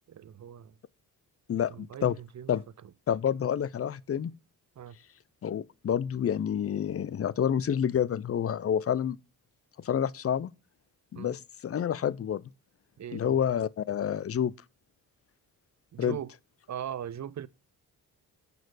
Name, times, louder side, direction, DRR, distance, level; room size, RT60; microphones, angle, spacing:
voice 1, 0.1-0.7 1.5-2.5 4.8-5.0 11.1-11.4 13.0-13.4 15.9-16.3 16.7-17.5, right 9 dB, 40° right, 0.7 m, -40 dB
voice 2, 1.5-2.2 2.5-2.6 3.1-4.3 5.4-9.2 9.8-10.5 11.1-12.4 13.1-14.5 16.0-16.2, left 9 dB, 35° left, 0.6 m, -28 dB
6.8 x 6.2 x 4.0 m
supercardioid pair, 50°, 44 cm